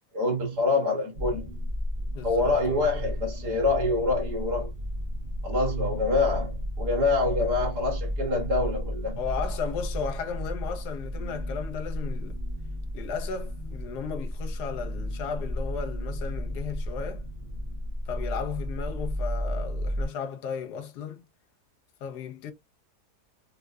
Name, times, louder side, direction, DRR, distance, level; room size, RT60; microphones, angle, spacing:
voice 1, 0.1-1.6 2.2-4.7 5.4-9.2, left 3 dB, 80° right, 2.0 m, -26 dB
sound 1, 1.1-20.0, equal, 55° right, 0.5 m, -33 dB
voice 2, 9.2-12.4 12.9-17.2 18.1-21.2 22.0-22.5, left 6 dB, 80° left, 1.2 m, -35 dB
4.5 x 2.0 x 2.3 m
omnidirectional pair, 1.7 m